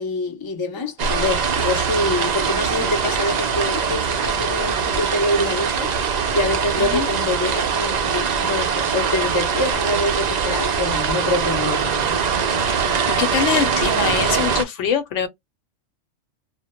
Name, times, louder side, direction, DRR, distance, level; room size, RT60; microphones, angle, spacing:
voice 1, 0.0-12.2, left 2 dB, 35° left, 0.3 m, -25 dB
sound 1, 1.0-14.6, right 6 dB, 60° right, 0.4 m, -22 dB
voice 2, 13.1-15.3, left 8 dB, 70° left, 0.9 m, -23 dB
2.1 x 2.0 x 2.8 m
omnidirectional pair, 1.3 m